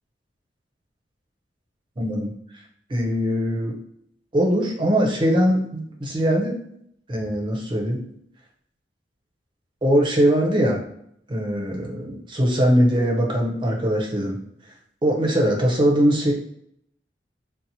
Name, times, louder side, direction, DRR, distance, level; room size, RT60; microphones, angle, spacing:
voice 1, 2.0-2.3 2.9-3.8 4.3-6.5 7.1-8.0 9.8-10.8 11.3-14.4 15.0-16.3, equal, 25° right, -1 dB, 0.6 m, -21 dB
2.8 x 2.0 x 4.0 m, 0.70 s
head